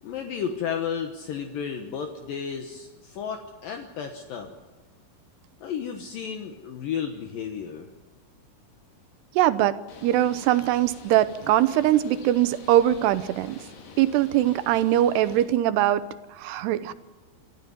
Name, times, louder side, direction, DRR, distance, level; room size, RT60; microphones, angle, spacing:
voice 1, 0.0-4.5 5.6-7.9, left 7 dB, 65° left, 4 dB, 2.7 m, -33 dB
voice 2, 9.4-9.8 10.0-13.6 14.0-16.0 16.4-16.9, right 13 dB, 85° right, 13 dB, 3.0 m, -22 dB
Bird, 9.9-15.4, left 5 dB, 85° left, 4.7 m, -46 dB
26.5 x 13.0 x 9.4 m, 1.2 s
omnidirectional pair, 4.7 m